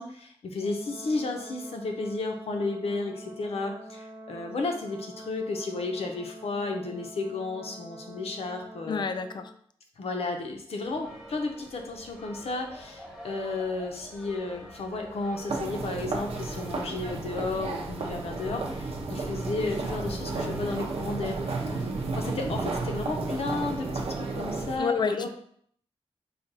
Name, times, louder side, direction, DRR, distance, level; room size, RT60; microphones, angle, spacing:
voice 1, 0.0-9.0 10.0-21.4 22.1-25.3, left 3 dB, 80° left, 3 dB, 0.7 m, -33 dB
Brass instrument, 0.6-9.5, right 1 dB, 25° right, 0.7 m, -46 dB
voice 2, 8.9-9.5 24.8-25.3, left 6 dB, 50° left, 9 dB, 0.4 m, -29 dB
sound 1, 10.8-24.1, equal, 5° right, 0.9 m, -48 dB
sound 2, 15.5-24.8, right 3 dB, 80° right, 0.6 m, -32 dB
5.0 x 2.3 x 4.0 m, 0.63 s
wide cardioid pair, 140°, 10 cm